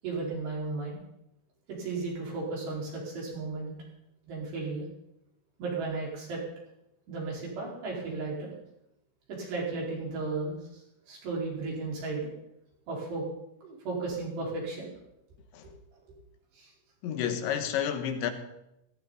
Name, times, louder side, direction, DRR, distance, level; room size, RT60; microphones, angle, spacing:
voice 1, 0.0-1.0 1.7-3.7 4.3-4.8 5.6-6.4 7.1-8.5 9.3-12.3 12.9-13.2 13.6-14.9 15.6-15.7 16.5-16.7, right 3 dB, 65° right, 7.0 m, -34 dB
voice 2, 17.0-18.3, left 9 dB, 80° left, 3.5 m, -30 dB
17.0 x 16.0 x 4.1 m
omnidirectional pair, 5.2 m